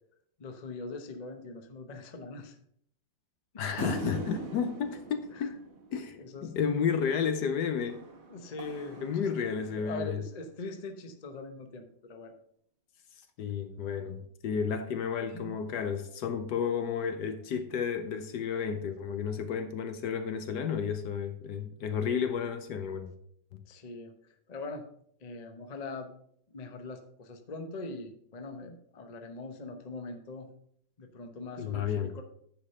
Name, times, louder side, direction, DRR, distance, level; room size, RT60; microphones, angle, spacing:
voice 1, 0.4-2.6 3.5-3.6 5.3-5.5 6.2-7.1 8.3-12.4 15.3-15.6 23.6-24.8 25.2-26.1 26.5-30.5 31.0-32.2, left 3 dB, 40° left, 0.5 m, -42 dB
voice 2, 3.6-5.6 5.9-8.1 9.0-10.2 13.4-23.1 23.5-23.6 31.6-32.1, left 7 dB, 65° left, 1.2 m, -32 dB
sound 1, 3.8-6.5 7.9-10.0, right 3 dB, 40° right, 1.3 m, -42 dB
9.8 x 5.0 x 5.5 m
omnidirectional pair, 2.2 m